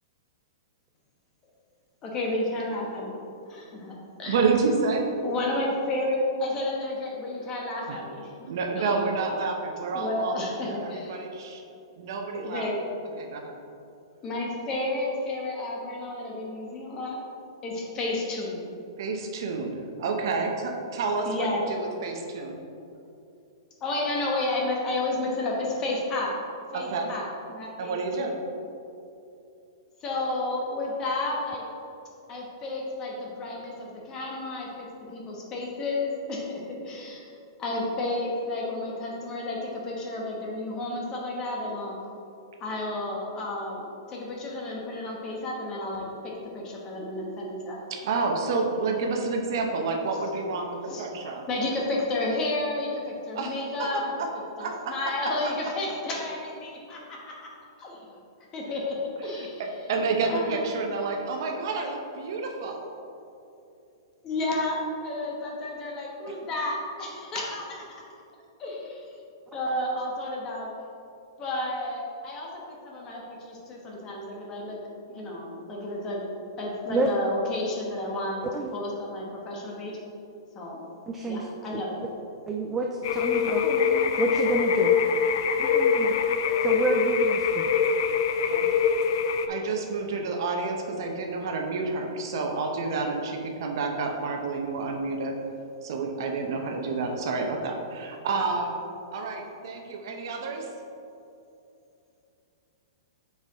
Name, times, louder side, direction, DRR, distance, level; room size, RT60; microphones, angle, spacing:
voice 1, 2.0-3.2 3.5-4.4 5.2-8.3 8.8-9.0 9.9-11.2 12.3-12.8 14.2-17.2 17.6-18.6 21.2-21.7 23.8-26.3 26.7-28.4 30.0-31.6 32.3-37.3 37.6-41.9 42.6-47.8 50.2-50.3 50.8-51.0 51.5-54.1 54.6-57.5 57.8-58.1 58.5-59.7 60.2-60.8 64.2-68.0 68.6-69.0 69.5-70.7 71.4-74.8 75.1-76.2 76.6-78.4 78.7-80.0 80.5-80.8 81.3-82.0, left 2 dB, 25° left, -2 dB, 1.1 m, -31 dB
voice 2, 4.2-5.0 7.9-8.0 8.4-11.6 12.0-12.7 13.2-13.5 19.0-22.6 26.7-27.1 27.8-28.3 47.9-51.4 53.3-53.9 54.2-54.3 54.6-54.9 59.6-62.9 88.5-88.6 89.5-95.3 95.8-98.8 99.1-100.7, right 4 dB, 60° right, 2 dB, 0.9 m, -29 dB
voice 3, 81.1-81.4 81.7-81.8 82.5-85.0 85.6-86.2 86.6-87.7, right 3 dB, 10° right, 1 dB, 0.3 m, -29 dB
sound 1, 83.0-89.5, left 6 dB, 55° left, 0.4 m, -24 dB
6.7 x 4.8 x 3.6 m, 2.7 s
hypercardioid pair, 155°, 2 cm